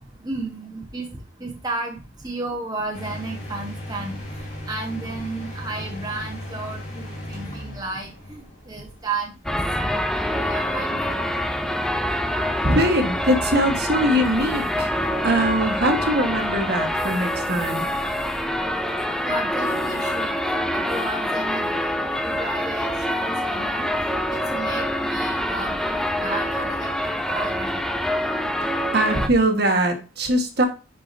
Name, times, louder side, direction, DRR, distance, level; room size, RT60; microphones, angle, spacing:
voice 1, 0.2-1.1 1.4-4.1 4.7-9.4 9.8-11.2 19.2-20.4 20.7-23.9 24.3-27.8, right 3 dB, 20° right, 1 dB, 1.0 m, -33 dB
sound 1, 2.9-17.0, equal, 35° left, 2.4 m, -39 dB
sound 2, 9.4-29.3, equal, 5° left, 0.4 m, -25 dB
voice 2, 12.6-14.9 15.2-17.9 28.9-30.7, right 1 dB, 50° right, 4 dB, 1.3 m, -21 dB
10.5 x 4.7 x 2.6 m, 0.32 s
head